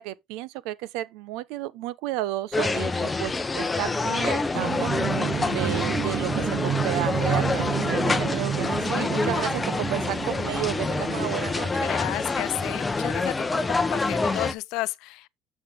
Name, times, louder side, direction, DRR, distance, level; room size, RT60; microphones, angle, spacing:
voice 1, 0.0-4.9 5.5-11.9, right 15 dB, 85° right, 0.8 m, -32 dB
sound 1, 2.5-14.5, left 3 dB, 15° left, 0.8 m, -27 dB
sound 2, 4.5-12.1, right 9 dB, 50° right, 1.4 m, -30 dB
voice 2, 11.8-13.4 13.7-15.3, left 20 dB, 70° left, 0.5 m, -32 dB
8.0 x 7.4 x 3.5 m
cardioid pair, 145°, 0 cm